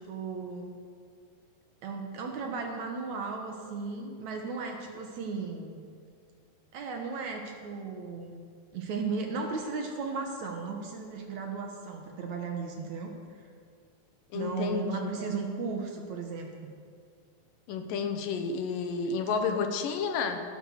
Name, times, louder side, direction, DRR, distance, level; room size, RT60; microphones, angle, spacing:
voice 1, 0.1-0.7 1.8-5.8 6.7-8.4 8.7-13.1 14.3-16.7, right 4 dB, 65° right, 2 dB, 2.2 m, -35 dB
voice 2, 14.3-14.8 17.7-20.4, left 5 dB, 75° left, 6 dB, 2.5 m, -30 dB
17.0 x 8.5 x 6.4 m, 2.1 s
omnidirectional pair, 4.0 m